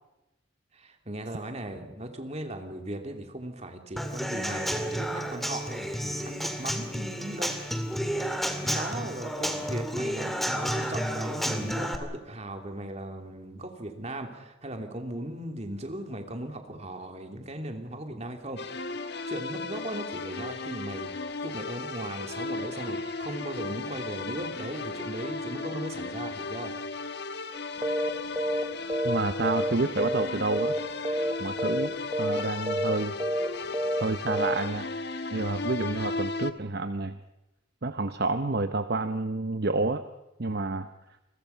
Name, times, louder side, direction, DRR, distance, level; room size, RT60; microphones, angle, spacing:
voice 1, 0.7-7.9 8.6-18.8 19.3-26.7, right 1 dB, 35° right, 4 dB, 2.9 m, -38 dB
Human voice / Acoustic guitar / Drum, 4.0-11.9, equal, ahead, 2.2 m, -31 dB
sound 1, 18.6-36.5, left 3 dB, 60° left, 1.3 m, -36 dB
sound 2, 27.8-28.1 28.4-28.6 28.9-30.3 30.5-30.8 31.0-31.3 31.6-31.9 32.1-32.4 32.7-32.9 33.2-33.5 33.7-34.0 34.3-34.6, equal, 15° right, 1.6 m, -28 dB
voice 2, 29.0-30.7 31.4-31.9 32.2-33.2 34.0-34.9 35.3-37.2 37.8-40.0 40.4-40.9, right 3 dB, 55° right, 9 dB, 0.9 m, -29 dB
29.0 x 21.5 x 5.7 m, 0.97 s
head